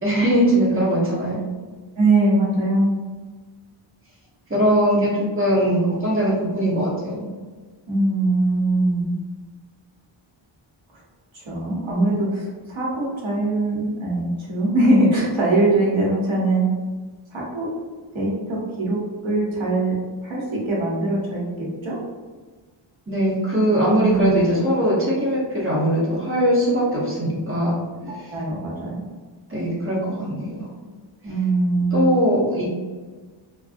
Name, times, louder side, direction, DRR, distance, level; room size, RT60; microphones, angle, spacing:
voice 1, 0.0-1.4 4.5-7.2 23.1-27.8 28.1-28.3 29.5-30.7 31.9-32.7, equal, 25° right, -6 dB, 0.9 m, -20 dB
voice 2, 2.0-2.9 7.9-9.1 11.3-16.7 17.3-17.7 18.1-19.9 20.2-22.0 23.9-24.4 28.0-29.0 31.2-32.1, right 2 dB, 70° right, -5 dB, 1.0 m, -22 dB
2.5 x 2.2 x 2.4 m, 1.4 s
wide cardioid pair, 85°, 48 cm